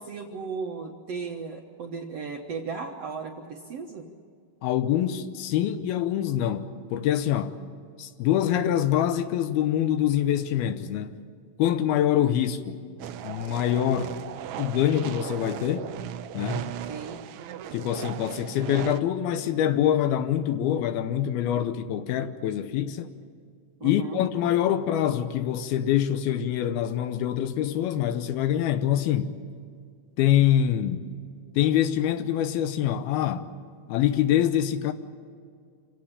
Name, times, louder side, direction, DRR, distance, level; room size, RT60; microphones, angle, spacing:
voice 1, 0.0-4.1 16.9-17.2 23.8-24.2, right 5 dB, 60° right, 1.7 m, -36 dB
voice 2, 4.6-7.6 8.0-11.1 11.6-12.8 13.2-14.2 14.6-15.9 16.3-16.7 17.7-23.1 23.8-29.4 30.2-31.0 31.6-33.4 33.9-34.9, left 11 dB, 85° left, 2.8 m, -25 dB
sound 1, 13.0-19.0, right 10 dB, 85° right, 1.6 m, -37 dB
27.0 x 17.0 x 8.8 m
omnidirectional pair, 4.3 m